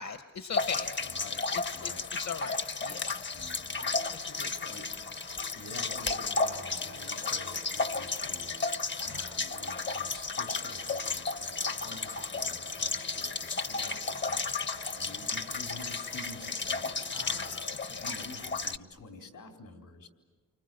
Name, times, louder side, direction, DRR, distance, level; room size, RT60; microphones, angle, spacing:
voice 1, 0.0-0.9 1.5-1.9 2.2-3.2 4.1-4.8 9.1-9.4 17.1-18.1, left 6 dB, 60° left, 8 dB, 1.1 m, -41 dB
sound 1, 0.5-18.8, left 4 dB, 35° left, 0.7 m, -33 dB
voice 2, 1.0-1.4 1.7-2.0 3.3-3.9 4.3-4.9 5.5-14.7 15.0-17.6 18.0-20.1, left 3 dB, 85° left, 2 dB, 4.0 m, -48 dB
sound 2, 3.8-17.7, right 7 dB, 75° right, 1.5 m, -55 dB
29.5 x 24.5 x 7.8 m, 1.4 s
wide cardioid pair, 85°, 32 cm